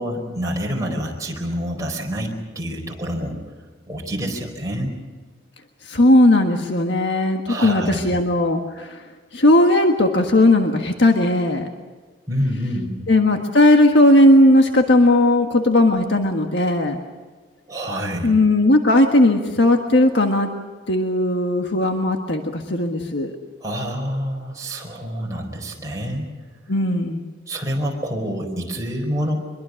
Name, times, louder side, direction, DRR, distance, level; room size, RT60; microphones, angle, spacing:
voice 1, 0.0-3.4 3.9-4.9 7.5-8.1 12.3-12.9 17.7-18.3 23.6-26.3 27.5-29.4, equal, 15° right, -1 dB, 4.7 m, -27 dB
voice 2, 5.9-9.0 9.3-11.7 13.1-17.0 18.2-20.5 20.9-23.3 26.7-27.2, left 1 dB, 65° left, 4 dB, 1.6 m, -17 dB
24.0 x 22.5 x 6.5 m, 1.4 s
head